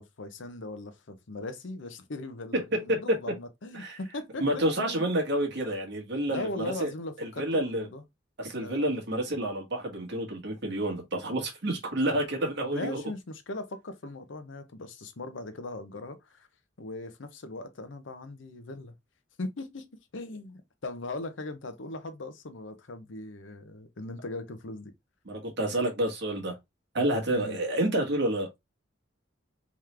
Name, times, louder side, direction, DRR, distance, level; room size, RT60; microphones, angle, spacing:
voice 1, 0.0-5.1 6.3-8.0 8.6-8.9 12.7-16.5 16.8-18.9 19.4-24.9 27.3-27.6, left 2 dB, 70° left, 0.7 m, -39 dB
voice 2, 2.5-3.2 3.7-4.0 4.4-6.5 6.8-6.9 7.2-7.9 8.4-13.0 25.2-26.5 26.9-28.5, right 1 dB, 60° right, 1.4 m, -29 dB
3.6 x 3.1 x 3.2 m
head